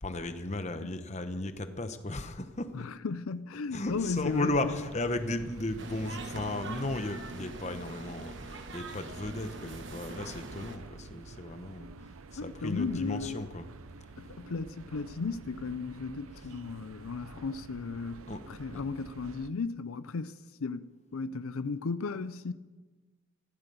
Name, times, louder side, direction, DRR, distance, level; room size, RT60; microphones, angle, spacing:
voice 1, 0.0-2.9 3.7-11.9 12.3-13.7 16.4-16.5 18.3-18.4, left 2 dB, 30° left, 1.0 m, -35 dB
voice 2, 2.7-4.8 12.4-13.5 14.2-20.8 21.1-22.5, left 4 dB, 80° left, 0.5 m, -35 dB
sound 1, 3.8-19.5, right 3 dB, 75° right, 0.7 m, -49 dB
sound 2, 5.8-10.8, right 3 dB, 55° right, 1.3 m, -43 dB
15.5 x 13.0 x 6.9 m
head